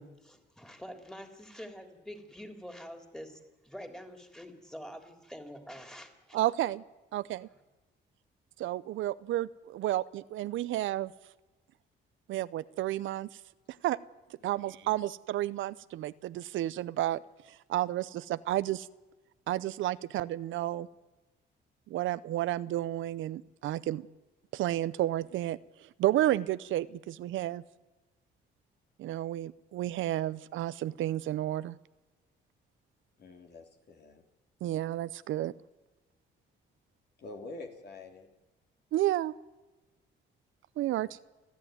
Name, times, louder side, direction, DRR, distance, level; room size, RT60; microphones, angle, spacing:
voice 1, 0.0-6.4, equal, 5° left, 5 dB, 3.4 m, -46 dB
voice 2, 6.3-6.8 7.1-7.5 8.6-11.1 12.3-13.4 13.7-14.0 14.4-18.9 19.5-20.9 21.9-24.1 24.5-27.6 29.0-31.8 34.6-35.5 38.9-39.3 40.8-41.2, right 14 dB, 80° right, 16 dB, 0.6 m, -31 dB
voice 3, 14.4-15.0 33.2-34.2 37.2-38.3, left 2 dB, 55° left, 3 dB, 3.5 m, -47 dB
29.5 x 10.5 x 9.4 m, 1.1 s
cardioid pair, 90°, 20 cm